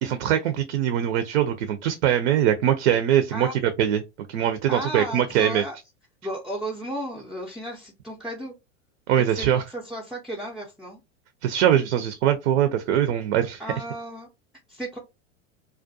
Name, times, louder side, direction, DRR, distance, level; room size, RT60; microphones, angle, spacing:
voice 1, 0.0-4.0 4.3-5.6 9.1-9.6 11.4-13.6, right 10 dB, 65° right, 0.5 m, -22 dB
voice 2, 4.7-5.8 6.2-8.5 9.2-11.0 13.6-14.3 14.7-15.0, right 1 dB, ahead, 0.4 m, -34 dB
2.4 x 2.1 x 2.5 m
hypercardioid pair, 95°, 36 cm